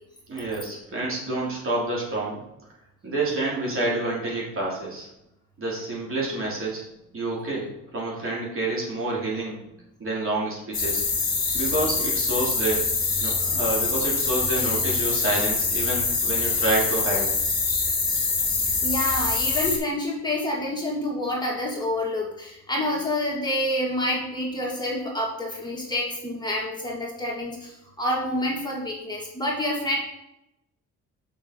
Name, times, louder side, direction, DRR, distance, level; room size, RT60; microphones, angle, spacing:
voice 1, 0.3-2.4 3.0-5.1 5.6-6.8 7.1-9.6 10.0-11.0 11.5-12.8 13.2-17.3 18.4-18.5, right 2 dB, 45° right, -4 dB, 3.0 m, -28 dB
sound 1, 10.7-19.8, left 4 dB, 30° left, 2.1 m, -24 dB
voice 2, 18.8-27.7 28.0-30.0, left 1 dB, 15° left, -4 dB, 2.1 m, -28 dB
6.5 x 5.9 x 3.9 m, 0.86 s
cardioid pair, 90°, 30 cm